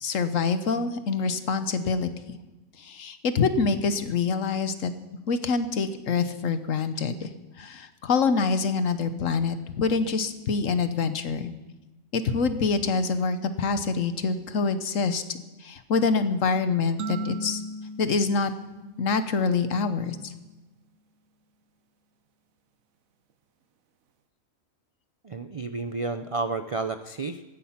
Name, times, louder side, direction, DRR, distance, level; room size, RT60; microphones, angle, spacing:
voice 1, 0.0-2.1 2.8-4.9 5.3-7.3 7.6-11.5 12.1-17.6 18.0-18.5 19.0-20.3, left 4 dB, 70° left, 11 dB, 1.4 m, -26 dB
sound 1, 17.0-19.6, right 1 dB, 75° right, 1.3 m, -37 dB
voice 2, 25.2-27.4, right 3 dB, 55° right, 10 dB, 0.3 m, -31 dB
17.0 x 14.0 x 5.8 m, 1.1 s
omnidirectional pair, 1.4 m